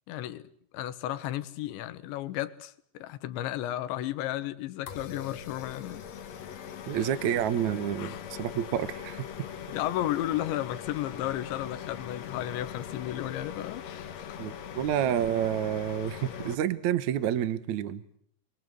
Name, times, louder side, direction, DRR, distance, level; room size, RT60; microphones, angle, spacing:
voice 1, 0.1-6.1 6.9-7.1 8.0-8.2 9.7-14.4, left 13 dB, 80° left, 3.6 m, -34 dB
sound 1, 4.9-16.5, left 9 dB, 60° left, 1.9 m, -41 dB
voice 2, 6.9-9.3 14.4-18.0, right 10 dB, 70° right, 1.8 m, -29 dB
29.5 x 23.5 x 8.0 m
omnidirectional pair, 5.4 m